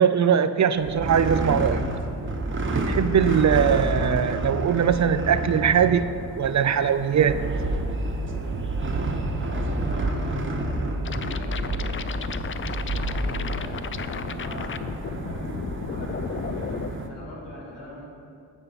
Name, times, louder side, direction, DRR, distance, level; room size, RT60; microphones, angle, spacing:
voice 1, 0.0-1.9 2.7-7.6, right 8 dB, 45° right, 12 dB, 0.4 m, -21 dB
sound 1, 0.8-17.1, right 1 dB, 30° right, 1.0 m, -29 dB
voice 2, 9.4-12.2 12.8-15.6 15.9-18.1, left 1 dB, 80° left, -4 dB, 2.4 m, -42 dB
sound 2, 11.0-16.9, left 7 dB, 30° left, 0.4 m, -33 dB
8.8 x 5.4 x 5.6 m, 2.4 s
cardioid pair, 55°, 42 cm